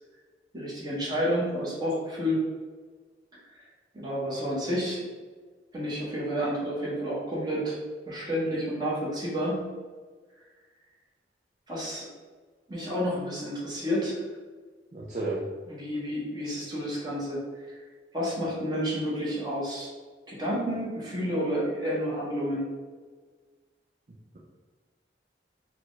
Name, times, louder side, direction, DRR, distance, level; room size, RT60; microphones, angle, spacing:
voice 1, 0.5-2.4 3.9-5.0 5.7-7.8 8.1-9.6 11.7-12.1 12.7-14.2 15.7-17.4 17.7-17.8 18.1-19.9 20.3-22.6, equal, 20° right, -7 dB, 1.3 m, -30 dB
voice 2, 14.9-15.4, right 2 dB, 40° right, -5 dB, 0.5 m, -31 dB
4.5 x 2.4 x 3.9 m, 1.5 s
head